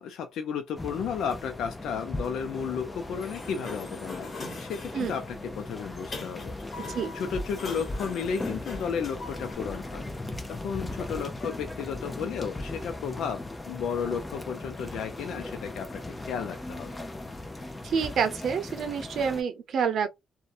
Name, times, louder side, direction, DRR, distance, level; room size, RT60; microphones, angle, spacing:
voice 1, 0.0-10.1 10.5-17.0, left 7 dB, 75° left, 0.4 m, -33 dB
sound 1, 0.7-19.4, left 2 dB, 15° left, 0.6 m, -38 dB
Sliding door, 3.0-9.5, left 3 dB, 45° left, 1.3 m, -42 dB
voice 2, 17.8-20.1, right 6 dB, 65° right, 0.6 m, -28 dB
2.6 x 2.1 x 2.4 m
cardioid pair, 90°, 0 cm